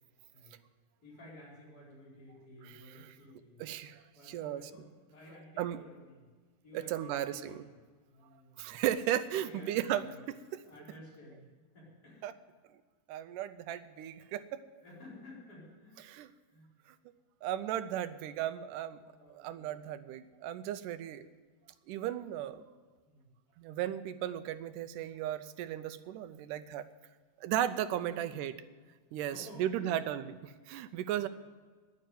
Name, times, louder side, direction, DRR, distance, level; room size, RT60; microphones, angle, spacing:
voice 1, 1.0-3.6 4.1-6.3 6.6-7.8 8.1-8.8 9.4-10.1 10.6-11.5 11.7-12.3 14.8-16.0 16.5-16.7 19.0-19.8 23.0-23.3 28.0-28.4 29.2-30.3 31.1-31.3, left 1 dB, 30° left, -7 dB, 4.8 m, -53 dB
voice 2, 3.6-4.6 5.6-5.8 6.7-7.5 8.6-10.0 10.5-10.6 12.2-12.3 13.1-14.6 16.1-16.3 17.4-19.0 19.3-21.3 21.9-22.7 23.6-26.8 27.4-28.5 29.1-31.3, right 11 dB, 85° right, 12 dB, 2.2 m, -35 dB
10.5 x 9.3 x 9.3 m, 1.4 s
omnidirectional pair, 3.7 m